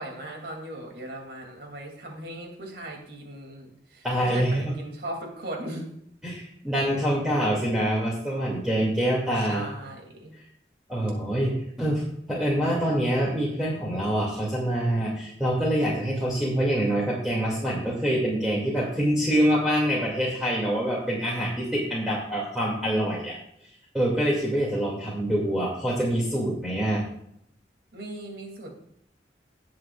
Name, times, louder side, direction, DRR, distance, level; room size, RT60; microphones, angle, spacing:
voice 1, 0.0-5.9 9.4-10.3 27.9-28.7, right 1 dB, 65° right, 1 dB, 2.7 m, -38 dB
voice 2, 4.0-4.7 6.2-9.7 10.3-10.4 10.9-11.5 11.8-23.4 23.9-27.0, equal, 5° right, -6 dB, 2.4 m, -25 dB
18.5 x 7.8 x 2.4 m, 0.72 s
head